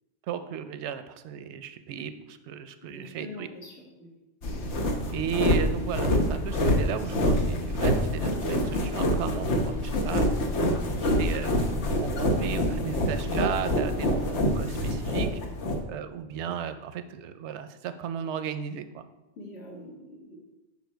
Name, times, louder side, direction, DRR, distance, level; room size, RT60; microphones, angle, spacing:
voice 1, 0.3-3.5 5.1-10.3 11.0-11.7 12.0-15.3 15.9-19.0, right 8 dB, 85° right, 10 dB, 0.9 m, -35 dB
voice 2, 2.9-4.1 15.4-15.5 19.4-20.4, left 1 dB, 70° left, -3 dB, 2.2 m, -44 dB
sound 1, 4.4-15.8, left 1 dB, 90° left, 1.2 m, -26 dB
7.2 x 5.5 x 4.5 m, 1.0 s
omnidirectional pair, 1.1 m